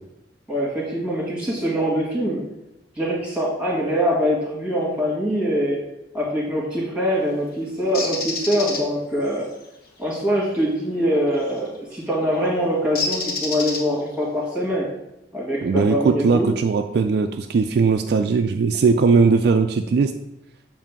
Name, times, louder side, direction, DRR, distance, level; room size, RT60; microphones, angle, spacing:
voice 1, 0.5-2.4 3.0-5.8 6.1-9.5 10.0-14.9 15.3-16.5, equal, 5° right, -4 dB, 1.8 m, -23 dB
Bird, 7.9-8.8 11.4-11.7 12.9-14.1, left 4 dB, 55° left, 1.0 m, -27 dB
voice 2, 15.6-20.1, right 4 dB, 60° right, 7 dB, 0.3 m, -19 dB
7.4 x 2.7 x 5.2 m, 0.86 s
head